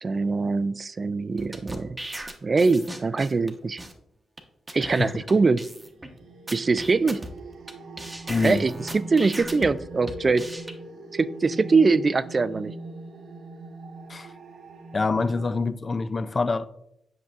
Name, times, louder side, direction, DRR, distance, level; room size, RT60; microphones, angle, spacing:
voice 1, 0.0-2.0 2.4-3.8 4.7-5.6 6.5-7.2 8.4-10.5 11.1-12.7, right 4 dB, 40° right, 0.3 m, -23 dB
sound 1, 1.4-3.5 3.8-3.9 4.4-4.5 4.7-4.9 5.3-5.4 5.6-6.1 6.5-7.7 8.0-9.7 10.1-10.7, right 1 dB, 15° right, 1.0 m, -37 dB
voice 2, 4.8-5.1 8.3-8.6 14.1-14.3 14.9-16.7, left 3 dB, 35° left, 0.4 m, -26 dB
sound 2, 5.7-15.6, right 2 dB, 75° right, 1.0 m, -41 dB
8.0 x 5.9 x 2.4 m
cardioid pair, 80°, 0 cm